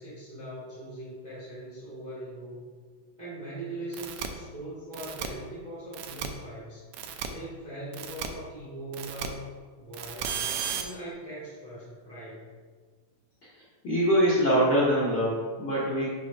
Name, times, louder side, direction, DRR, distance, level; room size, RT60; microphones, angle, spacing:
voice 1, 0.0-2.6 3.2-6.8 7.2-9.4 9.8-12.5, right 1 dB, 60° right, -9 dB, 0.4 m, -41 dB
sound 1, 3.9-4.3 4.9-5.3 5.9-6.3 6.9-7.3 7.9-8.3 8.9-9.3 9.9-10.8, right 9 dB, 85° right, 1.6 m, -34 dB
voice 2, 13.8-16.1, equal, 85° left, -8 dB, 0.9 m, -24 dB
6.1 x 3.2 x 5.3 m, 1.5 s
omnidirectional pair, 3.8 m